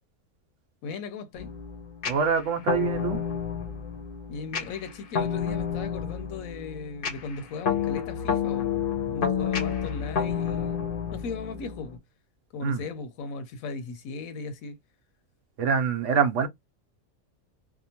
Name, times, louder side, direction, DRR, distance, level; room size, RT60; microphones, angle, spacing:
voice 1, 0.8-1.5 4.3-8.7 9.1-10.8 11.1-12.0 12.5-14.8, left 4 dB, 90° left, 1.0 m, -37 dB
sound 1, 1.3-12.0, left 7 dB, 55° left, 0.7 m, -30 dB
voice 2, 2.0-3.2 12.6-12.8 15.6-16.5, right 6 dB, 70° right, 0.9 m, -25 dB
2.8 x 2.1 x 2.8 m
omnidirectional pair, 1.4 m